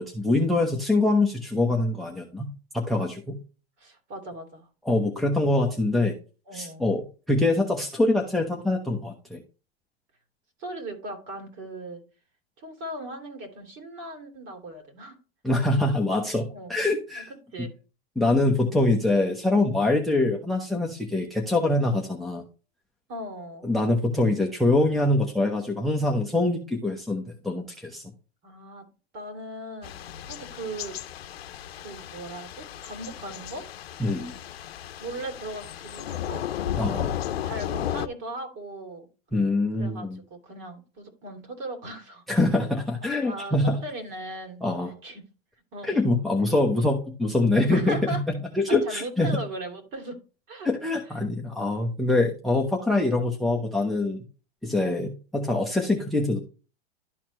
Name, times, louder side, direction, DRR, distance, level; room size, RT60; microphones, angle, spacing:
voice 1, 0.0-3.4 4.8-6.1 6.5-9.4 15.4-17.3 18.2-22.4 23.6-28.0 34.0-34.3 36.8-37.1 39.3-40.2 42.3-43.8 44.6-44.9 45.8-49.4 50.6-54.2 54.6-56.4, left 2 dB, ahead, 0.8 m, -24 dB
voice 2, 3.8-4.7 6.5-6.9 10.6-12.0 12.6-15.2 16.5-16.7 17.1-17.7 23.1-23.7 28.4-31.0 31.8-33.7 35.0-37.1 37.4-39.1 39.8-42.2 43.2-44.6 45.0-45.3 45.7-45.9 47.7-48.3 48.7-50.2 50.5-50.7 51.1-51.3 54.7-54.9, right 1 dB, 40° right, 2.7 m, -38 dB
Thunder / Rain, 29.8-38.1, left 10 dB, 90° left, 0.7 m, -34 dB
12.0 x 4.3 x 3.1 m
hypercardioid pair, 125°, 30 cm